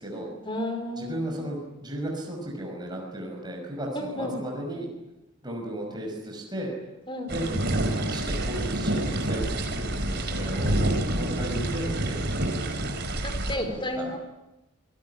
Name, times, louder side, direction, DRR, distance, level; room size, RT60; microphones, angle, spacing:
voice 1, 0.4-1.5 3.9-4.4 7.1-7.6 13.2-14.2, left 1 dB, 20° left, 6 dB, 4.8 m, -32 dB
voice 2, 1.0-4.9 5.4-6.7 7.3-7.5 8.1-10.7 11.2-12.9 13.6-14.1, right 1 dB, 20° right, -1 dB, 5.8 m, -35 dB
sound 1, 7.3-13.6, right 1 dB, 50° right, 3.6 m, -27 dB
28.0 x 19.0 x 9.9 m, 0.96 s
head